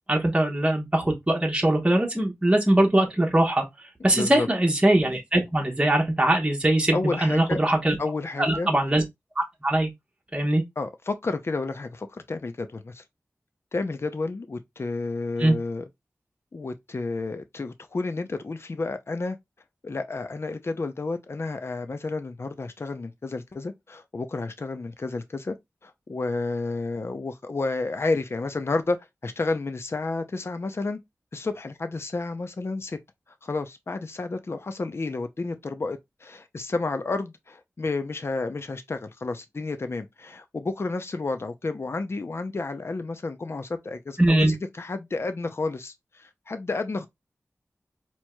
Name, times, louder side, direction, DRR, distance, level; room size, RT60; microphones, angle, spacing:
voice 1, 0.1-3.6 4.0-8.0 8.4-9.0 9.4-9.9 10.3-10.6 15.4-15.5 44.2-44.5, right 1 dB, 20° right, 1.1 m, -21 dB
voice 2, 4.1-4.5 6.9-7.6 8.0-8.7 10.8-13.0 13.7-15.8 16.5-19.4 19.8-25.6 25.8-29.0 29.2-31.0 31.3-33.0 33.4-47.1, left 3 dB, 50° left, 0.5 m, -31 dB
4.4 x 2.9 x 2.2 m
wide cardioid pair, 70°, 5 cm